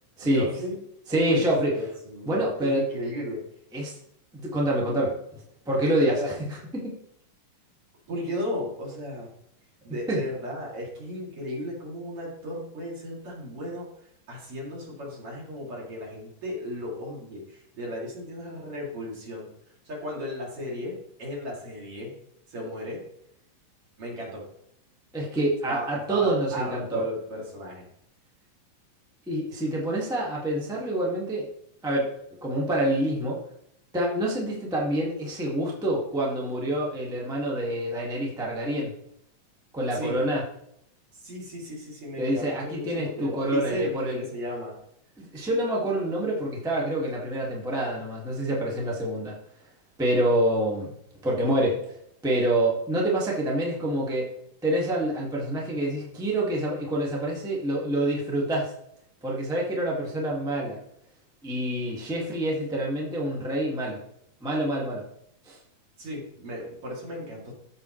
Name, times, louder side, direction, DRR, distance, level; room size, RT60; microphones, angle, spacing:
voice 1, 0.2-0.8 1.1-3.4 6.1-6.3 8.1-9.3 9.8-13.9 14.3-19.5 19.9-22.1 22.5-23.0 24.0-24.4 25.7-27.9 39.9-40.2 41.2-44.7 66.0-67.5, left 1 dB, 40° right, -4 dB, 3.5 m, -35 dB
voice 2, 1.1-1.7 2.2-2.9 3.7-4.0 4.3-5.2 5.6-6.9 10.1-10.2 25.1-27.1 29.3-31.5 31.8-32.2 32.4-33.4 33.9-38.9 39.7-40.4 42.2-44.2 45.2-49.3 50.0-50.9 51.2-51.9 52.2-54.3 54.6-58.7 59.2-60.8 61.4-64.0 64.4-65.0 65.5-65.6, right 1 dB, 5° right, -4 dB, 0.4 m, -27 dB
14.0 x 5.6 x 3.2 m, 0.73 s
omnidirectional pair, 4.0 m